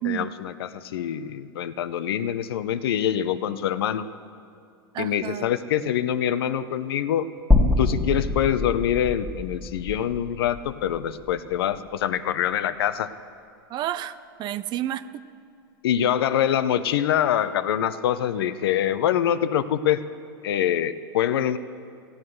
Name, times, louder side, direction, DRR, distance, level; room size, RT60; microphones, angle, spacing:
voice 1, 0.0-4.1 5.0-7.3 7.8-13.1 15.8-20.0 20.4-21.6, left 10 dB, 75° left, 13 dB, 0.7 m, -25 dB
voice 2, 4.9-5.5 13.7-15.0, right 13 dB, 35° right, 14 dB, 0.6 m, -30 dB
sound 1, 7.5-11.7, left 2 dB, 5° left, 1.7 m, -25 dB
16.5 x 8.8 x 7.8 m, 2.4 s
hypercardioid pair, 115°, 13 cm